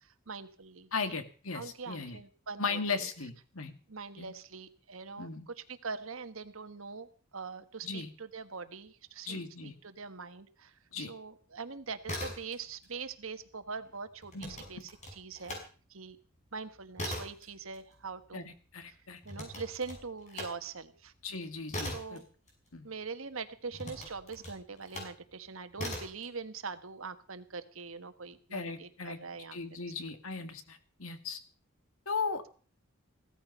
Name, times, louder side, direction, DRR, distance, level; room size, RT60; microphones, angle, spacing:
voice 1, 0.0-1.2 1.5-3.1 3.9-15.6 15.9-16.2 16.5-18.5 19.2-21.1 21.9-22.2 22.8-29.9, right 5 dB, 70° right, 10 dB, 1.4 m, -43 dB
voice 2, 0.9-2.2 2.6-3.7 4.2-4.3 5.2-5.5 7.8-8.1 9.3-9.8 10.9-11.1 14.3-14.6 18.3-19.2 21.2-22.2 22.7-22.9 28.5-29.2 29.5-31.4 32.1-32.5, left 4 dB, 75° left, 9 dB, 2.0 m, -37 dB
sound 1, 11.9-12.9 13.2-15.7 16.1-23.1 23.7-25.2 25.7-26.2, left 1 dB, 35° left, 6.3 m, -41 dB
16.0 x 13.5 x 5.5 m, 0.40 s
head